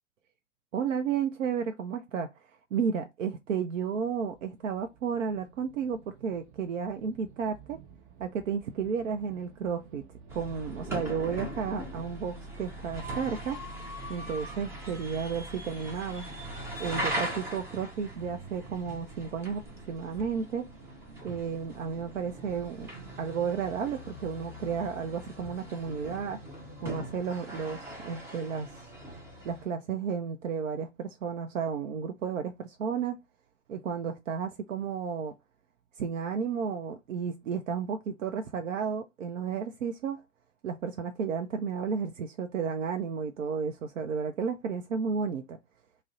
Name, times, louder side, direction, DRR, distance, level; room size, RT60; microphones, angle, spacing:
voice 1, 0.7-7.8 8.2-10.0 10.3-13.6 14.1-16.3 16.8-20.7 21.2-22.9 23.2-26.4 26.8-28.9 29.4-33.2 33.7-35.3 36.0-40.2 40.6-45.6, right 6 dB, 80° right, 0.5 m, -32 dB
sound 1, 3.7-23.2, right 5 dB, 40° right, 0.7 m, -54 dB
sound 2, 10.3-29.7, right 1 dB, 10° right, 0.4 m, -40 dB
2.5 x 2.0 x 3.8 m
hypercardioid pair, 115°, 37 cm